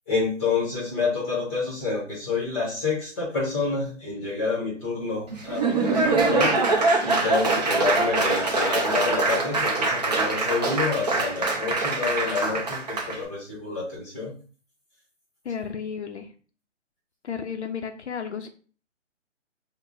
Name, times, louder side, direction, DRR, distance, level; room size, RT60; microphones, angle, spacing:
voice 1, 0.1-14.3, left 4 dB, 15° left, -5 dB, 0.8 m, -28 dB
Laughter / Applause, 5.3-13.2, right 3 dB, 35° right, 0.5 m, -24 dB
voice 2, 15.4-16.3 17.2-18.5, left 7 dB, 60° left, 6 dB, 0.5 m, -33 dB
4.6 x 2.1 x 2.5 m, 0.40 s
hypercardioid pair, 155°, 38 cm